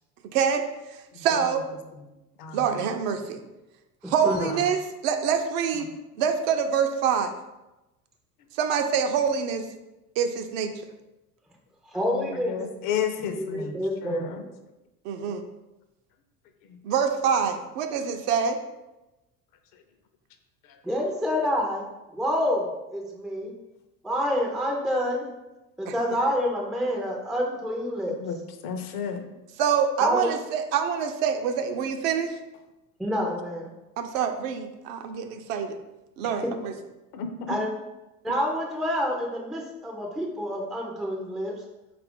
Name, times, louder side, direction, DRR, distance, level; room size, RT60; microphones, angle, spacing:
voice 1, 0.3-0.6 1.2-1.6 2.5-3.4 4.1-4.8 5.0-5.9 6.2-7.3 8.6-9.7 10.2-10.7 15.0-15.4 16.8-18.6 25.9-26.0 29.6-32.3 34.0-35.8 36.2-36.7, right 7 dB, 60° right, 6 dB, 0.5 m, -25 dB
voice 2, 1.1-1.6 1.9-2.0 2.4-2.7 4.2-4.6 12.1-14.4 16.7-16.8 20.7-20.8 28.2-29.2 37.1-37.5, left 7 dB, 45° left, 6 dB, 0.6 m, -33 dB
voice 3, 4.0-4.5 11.9-12.6 13.4-14.5 20.8-21.8 22.1-23.5 24.0-25.3 25.8-28.1 30.0-30.3 33.0-33.7 36.4-36.5 37.5-37.7 38.2-41.5, equal, ahead, 0 dB, 0.3 m, -28 dB
4.2 x 2.5 x 3.5 m, 1.0 s
hypercardioid pair, 70°, 46 cm